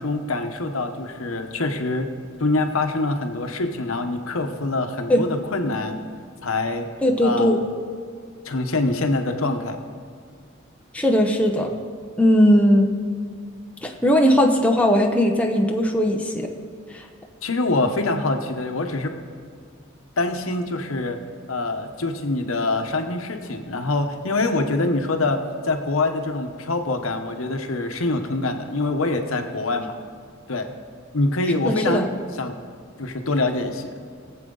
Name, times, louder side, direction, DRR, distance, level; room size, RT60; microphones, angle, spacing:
voice 1, 0.0-2.1 2.4-6.0 6.4-6.9 7.2-7.6 8.4-9.8 17.4-19.1 20.2-21.2 21.5-29.9 30.5-30.7 31.1-32.1 32.4-32.5 33.0-33.9, left 2 dB, 75° left, 5 dB, 1.0 m, -24 dB
voice 2, 7.0-7.6 10.9-11.7 12.2-12.9 13.8-16.5 16.9-17.0 31.6-32.1, equal, 5° left, 2 dB, 0.9 m, -18 dB
20.5 x 7.7 x 3.9 m, 2.1 s
head